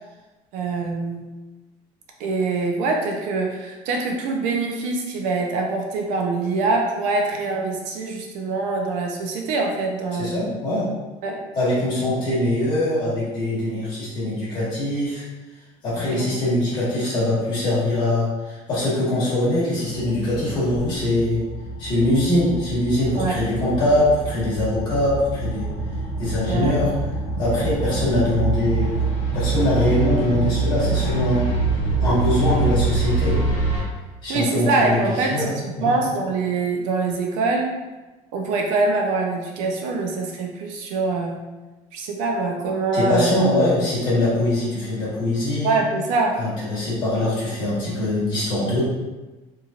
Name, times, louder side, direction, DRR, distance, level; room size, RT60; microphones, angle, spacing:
voice 1, 0.5-1.3 2.2-10.3 11.2-11.4 16.1-16.4 23.2-23.3 26.5-26.7 34.3-37.7 38.3-41.4 41.9-43.3 45.6-46.4, right 3 dB, 70° right, 1 dB, 0.5 m, -24 dB
voice 2, 10.2-10.9 11.5-15.2 15.8-21.4 21.8-25.7 26.2-26.9 27.4-29.0 29.3-31.5 32.0-33.4 34.2-35.5 35.8-36.0 42.9-45.8 46.4-48.8, left 1 dB, 35° left, -8 dB, 1.3 m, -22 dB
sound 1, 19.9-33.8, right 3 dB, 70° left, 1.0 m, -25 dB
3.0 x 2.7 x 2.4 m, 1.2 s
cardioid pair, 175°, 14 cm